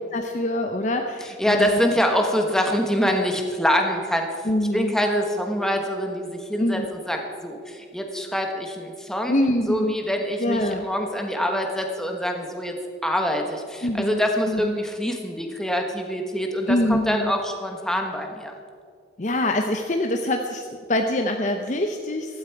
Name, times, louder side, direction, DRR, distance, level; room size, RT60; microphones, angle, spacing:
voice 1, 0.1-1.8 2.2-2.3 4.4-4.9 6.6-6.9 9.3-10.0 10.4-10.9 13.8-14.2 14.5-14.8 16.7-17.3 19.2-22.4, left 1 dB, 45° left, 4 dB, 0.7 m, -25 dB
voice 2, 1.4-4.3 4.7-9.3 9.7-12.7 13.0-18.5, equal, 5° left, 2 dB, 1.2 m, -25 dB
15.5 x 13.5 x 4.7 m, 2.3 s
head